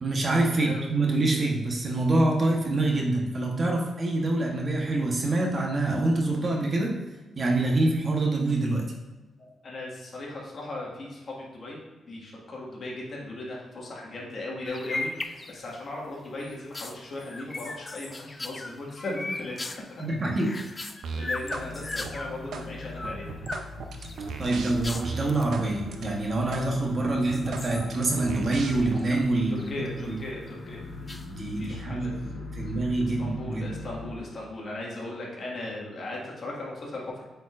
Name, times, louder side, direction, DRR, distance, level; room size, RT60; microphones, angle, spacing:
voice 1, 0.0-6.9 7.4-8.8 20.0-20.6 24.4-29.7 30.1-30.2 31.3-33.7, right 2 dB, 35° right, 0 dB, 1.1 m, -26 dB
voice 2, 0.5-0.8 9.4-11.8 12.1-19.6 19.9-20.0 20.5-20.8 21.1-23.3 29.5-30.8 31.6-32.8 33.2-37.2, left 2 dB, 45° left, -3 dB, 1.8 m, -37 dB
sound 1, 14.6-15.8 16.2-22.4 22.8-23.7 24.0-25.5 26.3-26.9 27.2-29.3 29.6-30.2 31.1-31.6, left 2 dB, 20° left, 0.4 m, -38 dB
sound 2, 21.0-21.7 21.9-22.7 23.0-25.7 25.9-26.1 26.5-26.7 27.0-29.0, right 4 dB, 75° right, 0.7 m, -36 dB
sound 3, 21.4-34.2, left 2 dB, 75° left, 1.6 m, -41 dB
8.2 x 4.6 x 2.5 m, 1.2 s
cardioid pair, 120°, 0 cm